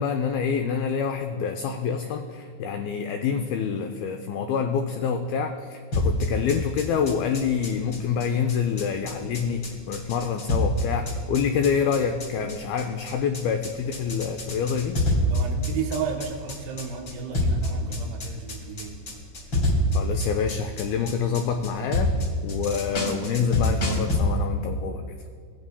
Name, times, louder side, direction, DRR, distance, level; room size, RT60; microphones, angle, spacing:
voice 1, 0.0-15.0 19.9-22.1 22.4-25.2, left 6 dB, 90° left, 5 dB, 2.1 m, -27 dB
sound 1, 5.9-24.2, left 1 dB, 35° left, 2.4 m, -27 dB
voice 2, 15.3-18.9, right 6 dB, 90° right, 2 dB, 3.0 m, -33 dB
17.0 x 9.2 x 2.2 m, 2.2 s
omnidirectional pair, 4.8 m